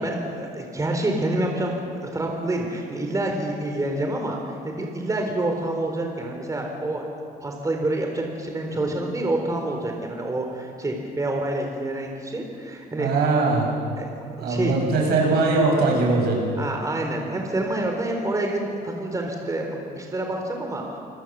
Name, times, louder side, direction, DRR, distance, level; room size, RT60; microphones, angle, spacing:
voice 1, 0.0-7.0 7.4-13.1 14.0-14.1 14.4-14.7 16.6-21.0, right 1 dB, 20° right, 2 dB, 3.9 m, -27 dB
voice 2, 13.0-13.7 14.4-16.4, right 3 dB, 70° right, 0 dB, 7.2 m, -21 dB
27.0 x 20.0 x 7.6 m, 2.4 s
cardioid pair, 110°, 17 cm